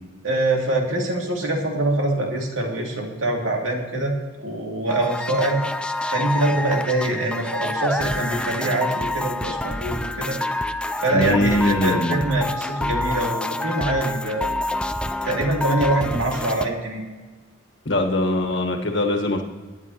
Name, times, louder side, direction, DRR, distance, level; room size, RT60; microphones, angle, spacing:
voice 1, 0.2-4.1 4.4-5.6 6.1-10.4 11.0-14.5 15.2-17.0, right 2 dB, 80° right, 0 dB, 2.6 m, -24 dB
sound 1, 4.9-16.7, left 2 dB, 5° left, 0.3 m, -27 dB
voice 2, 11.1-12.2 17.8-19.4, left 1 dB, 65° left, 3 dB, 1.5 m, -22 dB
21.5 x 9.8 x 3.0 m, 1.4 s
head